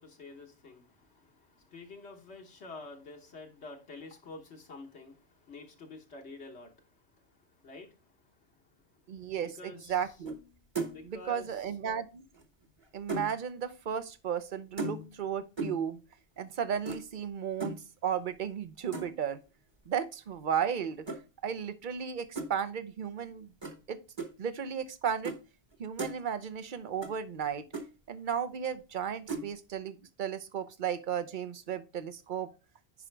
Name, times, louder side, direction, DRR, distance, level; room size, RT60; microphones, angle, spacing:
voice 1, 0.0-10.2 10.9-11.7, left 2 dB, 75° left, 1.5 m, -49 dB
voice 2, 9.1-10.4 11.0-12.2 12.9-16.0 16.4-19.4 19.9-21.1 21.4-23.5 23.9-24.0 24.4-25.4 25.8-27.7 28.1-32.5, right 8 dB, 50° right, 0.8 m, -34 dB
sound 1, 10.3-10.5 10.8-11.1 12.3-13.4 14.8-15.2 15.6-15.9 16.9-17.0 17.6-17.8 18.9-19.3 21.1-21.2 22.4-22.5 23.6-23.8 24.2-24.3 25.2-25.4 25.7-26.2 27.0-27.1 27.4-27.5 27.7-27.9 29.3-29.5, right 3 dB, 25° right, 1.1 m, -36 dB
10.0 x 5.0 x 3.3 m
omnidirectional pair, 1.1 m